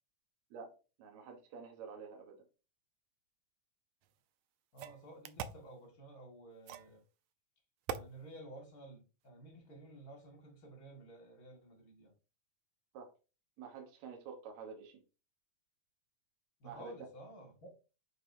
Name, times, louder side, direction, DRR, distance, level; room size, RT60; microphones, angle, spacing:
voice 1, 0.5-2.4 12.9-13.1 13.6-15.0 16.6-16.9, right 5 dB, 65° right, 2.1 m, -49 dB
sound 1, 4.0-4.1 4.8-5.7 6.7-7.0 7.9-8.1, right 9 dB, 90° right, 1.6 m, -42 dB
voice 2, 4.7-7.0 7.9-12.1 16.6-17.7, right 1 dB, 35° left, 1.7 m, -53 dB
9.0 x 4.0 x 2.7 m
omnidirectional pair, 3.9 m